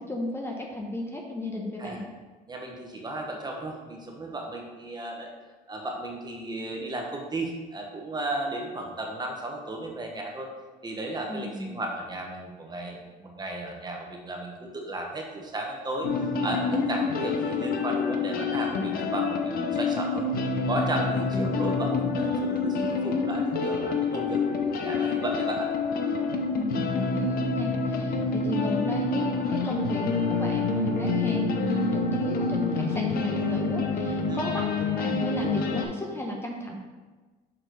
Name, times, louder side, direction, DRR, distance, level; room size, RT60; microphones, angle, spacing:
voice 1, 0.0-2.0 11.3-11.8 26.5-34.6 34.9-36.7, left 1 dB, 15° left, -1 dB, 0.9 m, -34 dB
voice 2, 2.5-5.3 5.7-10.5 10.8-20.2 20.7-25.7 34.3-34.5, right 2 dB, 25° right, 1 dB, 1.1 m, -34 dB
sound 1, 16.0-35.9, left 4 dB, 60° left, 0.8 m, -27 dB
6.1 x 4.4 x 4.6 m, 1.3 s
cardioid pair, 110°, 17 cm